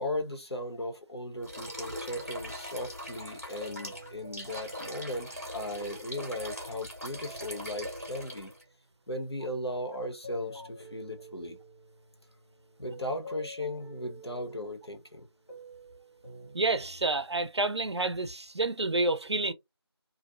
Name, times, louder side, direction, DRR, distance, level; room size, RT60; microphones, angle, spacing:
voice 1, 0.0-8.5 9.1-11.6 12.8-15.3, left 1 dB, 70° left, 1.0 m, -37 dB
sound 1, 1.4-8.6, equal, 35° right, 0.7 m, -41 dB
sound 2, 3.6-8.7 9.3-17.2, equal, 35° left, 0.8 m, -50 dB
voice 2, 16.5-19.5, right 2 dB, 80° right, 0.5 m, -29 dB
2.5 x 2.1 x 2.4 m
figure-of-eight pair, 175°, 14 cm